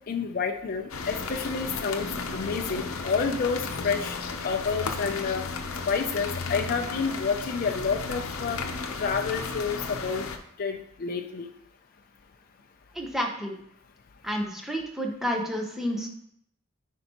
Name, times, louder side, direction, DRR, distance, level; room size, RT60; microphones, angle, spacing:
voice 1, 0.1-4.2 4.4-5.4 5.9-8.6 9.0-10.2 10.6-11.5, left 5 dB, 45° left, 4 dB, 0.4 m, -29 dB
sound 1, 0.9-10.4, left 4 dB, 85° left, 0.7 m, -34 dB
voice 2, 12.9-13.6 14.2-16.1, equal, ahead, 1 dB, 0.8 m, -30 dB
9.9 x 4.4 x 2.9 m, 0.72 s
head